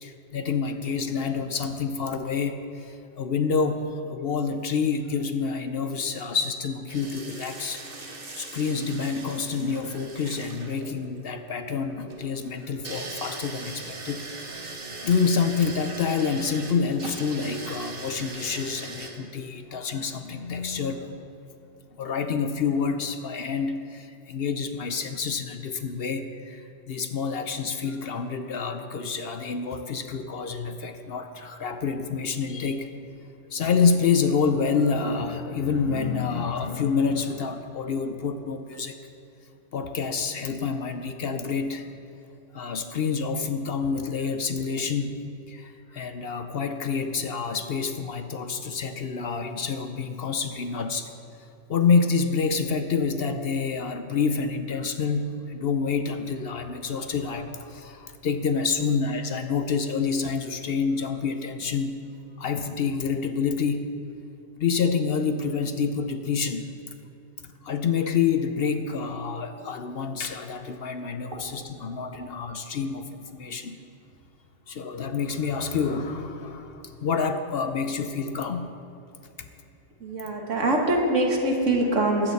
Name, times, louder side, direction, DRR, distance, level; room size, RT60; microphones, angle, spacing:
voice 1, 0.0-7.8 8.4-14.7 15.0-21.2 22.0-32.9 33.5-39.0 39.7-41.9 42.5-45.2 45.5-51.1 51.7-62.1 62.4-63.9 64.6-66.6 67.6-73.8 74.7-78.7, left 5 dB, 60° left, 8 dB, 0.8 m, -28 dB
sound 1, 6.9-19.1, right 3 dB, 45° right, 1.4 m, -40 dB
voice 2, 80.0-82.3, right 1 dB, 75° right, 1 dB, 1.9 m, -23 dB
21.5 x 8.6 x 4.1 m, 2.7 s
omnidirectional pair, 1.3 m